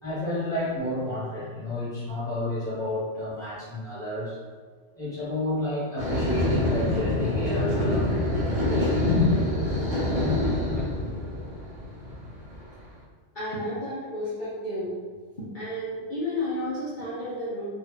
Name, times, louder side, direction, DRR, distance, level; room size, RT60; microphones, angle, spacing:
voice 1, 0.0-4.4 4.9-8.2 8.6-9.3, left 2 dB, 5° left, -11 dB, 1.4 m, -30 dB
sound 1, 6.0-12.9, left 1 dB, 35° right, 0.7 m, -26 dB
voice 2, 13.3-15.0 15.4-17.7, left 1 dB, 50° left, -10 dB, 0.8 m, -32 dB
2.7 x 2.6 x 3.7 m, 1.5 s
omnidirectional pair, 1.2 m